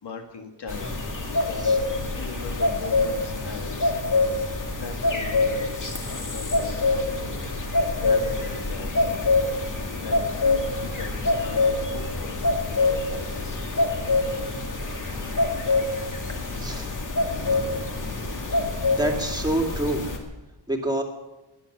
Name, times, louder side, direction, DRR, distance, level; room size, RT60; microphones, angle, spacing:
voice 1, 0.0-1.0 1.3-3.9 4.7-9.4 9.7-13.7, left 4 dB, 65° left, 4 dB, 2.2 m, -40 dB
sound 1, 0.7-20.2, left 2 dB, 45° left, 2.3 m, -25 dB
voice 2, 19.0-20.0 20.7-21.0, right 1 dB, 10° right, 2 dB, 2.2 m, -26 dB
21.0 x 8.0 x 7.9 m, 1.0 s
wide cardioid pair, 155°, 44 cm